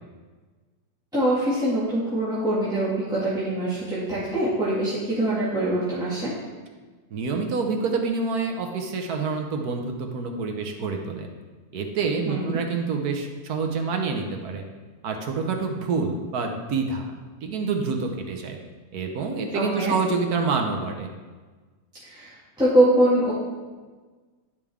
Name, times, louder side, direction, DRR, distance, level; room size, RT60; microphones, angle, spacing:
voice 1, 1.1-6.3 12.3-12.6 19.5-19.9 22.0-23.3, right 1 dB, 5° right, -11 dB, 2.0 m, -23 dB
voice 2, 7.1-11.3 11.7-14.6 15.0-17.1 17.4-18.6 18.9-21.1, right 4 dB, 70° right, 3 dB, 1.3 m, -27 dB
11.0 x 5.3 x 3.5 m, 1.4 s
omnidirectional pair, 1.7 m